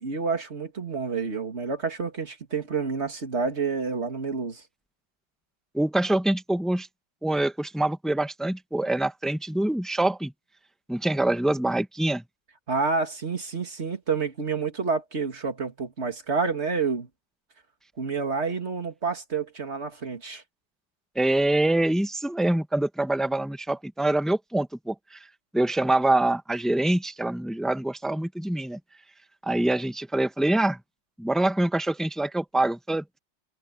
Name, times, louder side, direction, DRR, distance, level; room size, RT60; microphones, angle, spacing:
voice 1, 0.0-4.6 12.7-17.1 18.0-20.4, right 4 dB, 35° right, 2.5 m, -29 dB
voice 2, 5.7-6.9 7.2-10.3 10.9-12.2 21.1-25.2 25.5-28.8 29.4-30.8 31.2-33.2, right 1 dB, ahead, 0.3 m, -25 dB
omnidirectional pair, 2.2 m